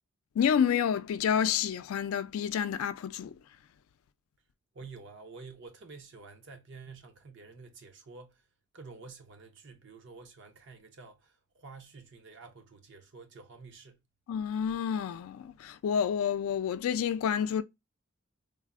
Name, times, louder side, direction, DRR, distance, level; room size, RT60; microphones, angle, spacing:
voice 1, 0.4-3.3 14.3-17.6, left 8 dB, 85° left, 0.3 m, -29 dB
voice 2, 4.7-8.4 8.7-14.0, right 4 dB, 60° right, 0.6 m, -49 dB
3.4 x 2.0 x 2.3 m
head